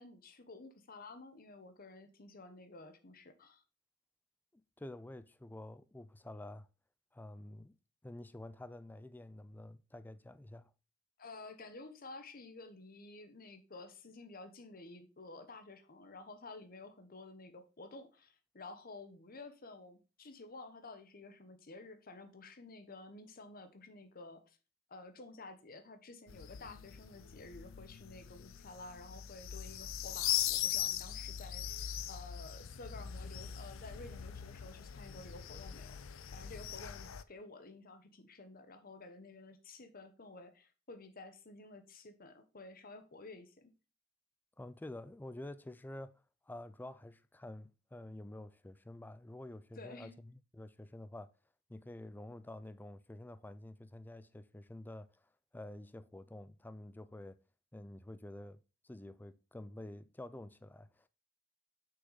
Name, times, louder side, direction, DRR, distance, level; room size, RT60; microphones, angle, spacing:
voice 1, 0.0-3.6 11.2-24.6 24.9-36.0 36.3-43.7 49.8-50.1, left 3 dB, 45° left, 1.0 m, -52 dB
voice 2, 4.5-6.7 7.1-7.8 8.0-10.7 44.6-51.3 51.7-55.2 55.5-57.4 57.7-61.1, left 1 dB, 10° left, 0.4 m, -49 dB
sound 1, 26.3-37.2, left 11 dB, 85° left, 0.5 m, -40 dB
6.2 x 5.8 x 3.9 m
head